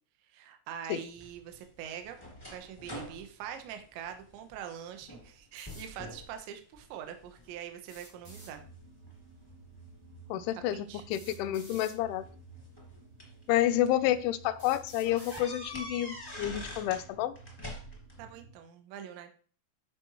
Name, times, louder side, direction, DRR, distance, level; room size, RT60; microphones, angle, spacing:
voice 1, 0.3-2.2 2.5-8.6 10.5-11.0 18.2-19.3, right 9 dB, 75° right, 3.1 m, -44 dB
sound 1, 1.1-4.6 5.0-5.4 5.6-6.3 6.8-7.5 8.1-9.5 10.7-10.8 12.0-13.4 14.0-14.1 14.4-14.5 15.0-17.1 17.3-18.2, left 1 dB, 15° left, 0.7 m, -45 dB
sound 2, 5.6-5.9 7.8-8.5 10.0-10.1 11.1-12.0 13.0-13.1 13.7-13.8 14.6-15.5, equal, 30° right, 0.5 m, -51 dB
sound 3, 8.2-18.5, right 3 dB, 60° right, 2.3 m, -53 dB
voice 2, 10.3-12.3 13.5-17.4, left 12 dB, 85° left, 2.9 m, -29 dB
14.5 x 5.2 x 3.1 m
omnidirectional pair, 5.4 m